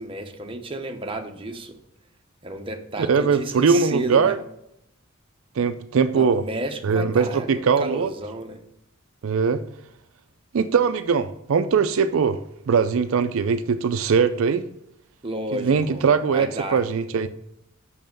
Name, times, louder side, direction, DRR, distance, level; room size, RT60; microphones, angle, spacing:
voice 1, 0.0-1.8 2.4-4.4 6.1-8.6 15.2-16.0 16.3-16.8, right 1 dB, 25° right, 4 dB, 0.8 m, -32 dB
voice 2, 3.0-4.4 5.6-6.4 6.8-8.1 9.2-9.6 10.5-12.4 12.7-14.6 15.5-17.3, right 5 dB, 70° right, 10 dB, 0.4 m, -21 dB
6.5 x 5.5 x 5.2 m, 0.78 s
head